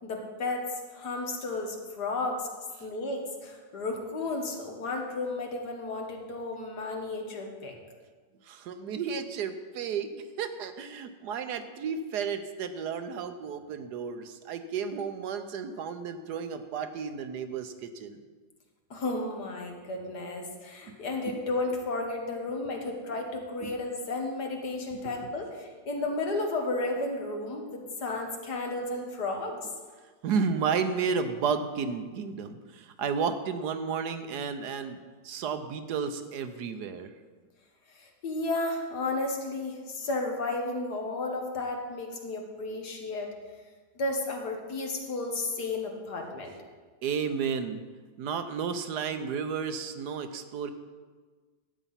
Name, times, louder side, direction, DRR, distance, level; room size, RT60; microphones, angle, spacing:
voice 1, 0.0-2.5 2.8-7.8 18.9-29.6 38.0-43.3 44.0-46.6, left 2 dB, 70° left, 2 dB, 2.1 m, -33 dB
voice 2, 8.5-18.2 21.3-21.5 23.6-23.7 25.0-25.1 30.2-35.0 35.2-37.1 47.0-47.8 48.2-50.7, right 6 dB, 75° right, 9 dB, 1.3 m, -32 dB
12.5 x 8.5 x 5.7 m, 1.4 s
omnidirectional pair, 1.8 m